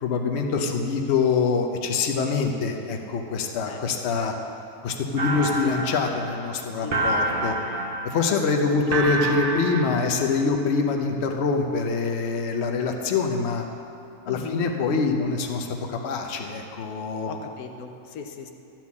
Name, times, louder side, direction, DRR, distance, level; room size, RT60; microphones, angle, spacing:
voice 1, 0.0-4.3 4.8-7.5 8.0-13.6 14.3-17.3, left 4 dB, 55° left, 3 dB, 1.0 m, -25 dB
voice 2, 3.6-4.5 5.3-5.8 6.8-7.2 8.3-9.0 14.3-14.7 17.2-18.5, left 6 dB, 85° left, 5 dB, 1.2 m, -39 dB
sound 1, 5.2-10.4, right 2 dB, 45° right, 0.9 m, -28 dB
12.5 x 4.5 x 8.3 m, 2.7 s
omnidirectional pair, 1.5 m